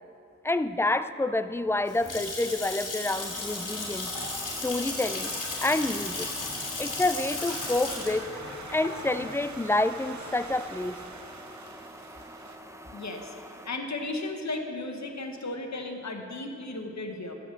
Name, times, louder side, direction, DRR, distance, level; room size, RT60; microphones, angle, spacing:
voice 1, 0.4-4.1 4.6-5.3 5.6-6.3 6.8-8.3 8.7-11.0, left 2 dB, 10° left, 12 dB, 0.4 m, -28 dB
Water tap faucet / Sink (filling or washing) / Splash splatter, 1.6-10.5, left 3 dB, 85° left, 2.7 m, -35 dB
sound 1, 3.1-13.7, right 1 dB, 10° right, 0.8 m, -45 dB
sound 2, 7.4-12.6, right 4 dB, 65° right, 0.8 m, -47 dB
voice 2, 12.9-13.3 13.6-17.3, left 2 dB, 60° left, 3 dB, 1.3 m, -35 dB
13.0 x 5.2 x 7.4 m, 2.6 s
wide cardioid pair, 55°, 31 cm